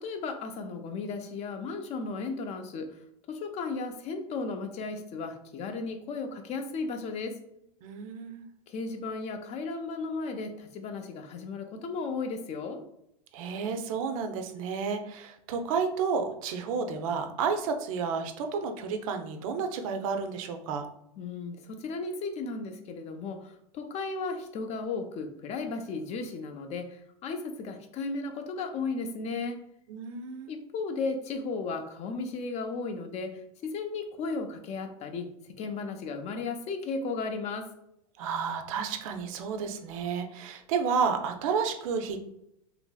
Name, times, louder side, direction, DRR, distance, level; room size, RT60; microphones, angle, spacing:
voice 1, 0.0-3.0 3.3-7.4 8.7-12.8 21.2-29.6 30.5-35.3 35.6-37.7, left 4 dB, 35° left, 6 dB, 0.5 m, -35 dB
voice 2, 7.8-8.5 13.3-20.9 29.9-30.5 38.2-42.2, right 5 dB, 60° right, 5 dB, 0.5 m, -31 dB
3.0 x 2.5 x 2.3 m, 0.79 s
hypercardioid pair, 95°, 19 cm